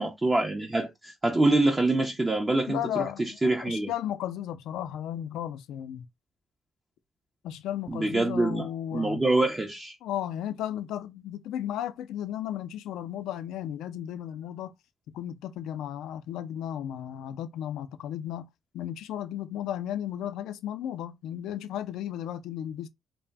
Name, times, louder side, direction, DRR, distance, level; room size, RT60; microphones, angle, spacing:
voice 1, 0.0-3.9 7.9-10.0, right 2 dB, 20° right, 0.4 m, -26 dB
voice 2, 2.7-6.1 7.4-9.3 10.0-14.7 15.1-18.5 18.7-22.9, left 11 dB, 85° left, 0.3 m, -34 dB
2.5 x 2.0 x 3.3 m
cardioid pair, 90°, 0 cm